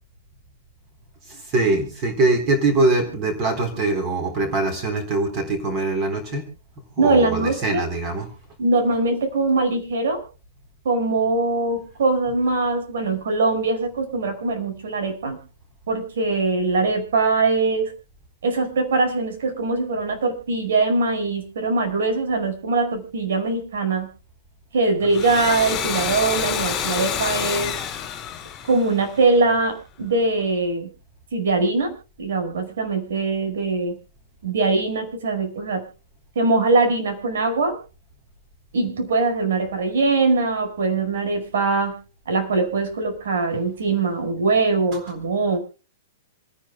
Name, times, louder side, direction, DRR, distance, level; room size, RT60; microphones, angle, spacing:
voice 1, 1.3-6.5 7.0-8.3, right 2 dB, 20° right, 7 dB, 3.9 m, -22 dB
voice 2, 7.0-7.8 8.6-10.2 10.9-15.4 15.9-17.9 18.4-24.1 24.7-27.7 28.7-30.9 31.3-31.9 32.2-34.0 34.4-35.9 36.4-37.8 38.7-42.0 42.3-45.6, right 3 dB, 70° right, 7 dB, 5.2 m, -22 dB
Domestic sounds home sounds, 25.0-29.5, left 8 dB, 15° left, 2.9 m, -28 dB
27.5 x 10.0 x 2.3 m, 0.34 s
hypercardioid pair, 180°, 0 cm